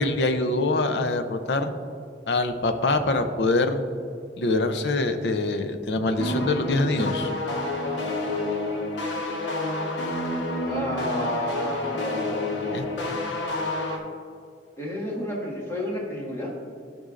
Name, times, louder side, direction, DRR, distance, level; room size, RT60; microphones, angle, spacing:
voice 1, 0.0-1.7 2.3-3.8 4.4-7.3 12.7-12.9, left 2 dB, 70° left, 7 dB, 0.6 m, -24 dB
sound 1, 6.2-14.0, left 2 dB, 85° left, 1.1 m, -29 dB
voice 2, 10.7-12.8 14.8-16.5, equal, 15° left, -5 dB, 1.9 m, -31 dB
14.5 x 5.3 x 2.5 m, 2.4 s
head